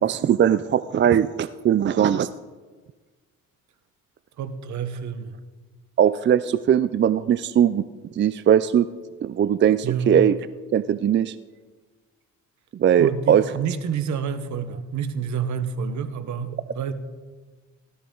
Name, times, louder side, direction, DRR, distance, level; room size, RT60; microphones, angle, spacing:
voice 1, 0.0-2.3 6.0-7.8 8.2-8.9 9.2-10.3 10.7-11.3 12.7-13.4, right 9 dB, 40° right, 14 dB, 0.4 m, -19 dB
voice 2, 4.4-5.3 9.8-10.1 13.0-16.9, right 7 dB, 70° right, 11 dB, 1.2 m, -28 dB
16.5 x 12.5 x 3.9 m, 1.4 s
cardioid pair, 90°, 30 cm